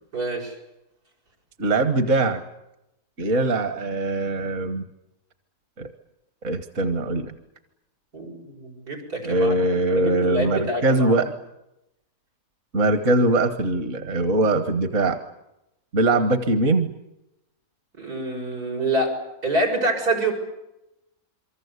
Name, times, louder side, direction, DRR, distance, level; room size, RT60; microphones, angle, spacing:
voice 1, 0.1-0.5 8.1-9.5 9.9-11.1 18.0-19.2 19.4-20.3, right 2 dB, 90° right, 1 dB, 7.5 m, -26 dB
voice 2, 1.6-2.4 3.2-4.8 5.8-5.9 6.4-7.3 9.2-11.3 12.7-15.2 15.9-16.9, right 2 dB, 55° right, 9 dB, 1.7 m, -22 dB
27.5 x 24.0 x 8.2 m, 0.89 s
omnidirectional pair, 1.6 m